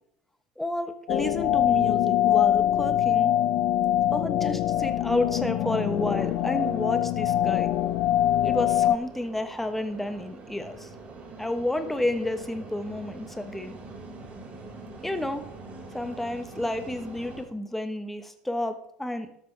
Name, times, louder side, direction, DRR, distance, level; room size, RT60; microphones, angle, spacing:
voice 1, 0.6-3.3 4.1-7.7 8.4-10.9 11.4-13.8 15.0-15.4 15.9-19.3, left 1 dB, 5° left, 8 dB, 1.1 m, -31 dB
sound 1, 1.1-9.0, left 12 dB, 60° left, 0.6 m, -23 dB
sound 2, 4.6-17.4, right 3 dB, 40° right, 4.1 m, -45 dB
13.0 x 12.5 x 3.4 m, 0.71 s
hypercardioid pair, 80°, 4 cm